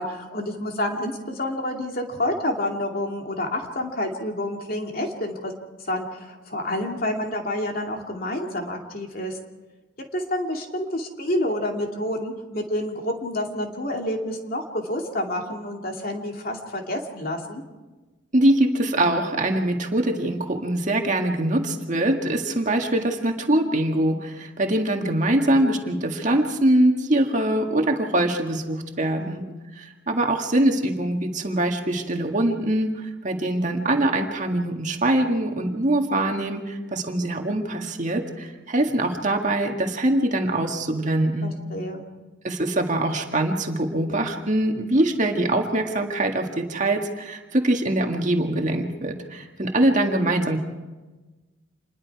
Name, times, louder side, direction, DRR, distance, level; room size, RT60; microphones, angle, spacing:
voice 1, 0.0-5.5 5.8-9.4 10.1-17.6 29.2-29.3 41.4-42.0, left 1 dB, 45° left, 2 dB, 2.5 m, -28 dB
voice 2, 18.3-29.4 29.8-41.6 42.4-50.6, right 1 dB, 40° right, 3 dB, 1.8 m, -23 dB
27.5 x 21.0 x 4.8 m, 1.2 s
head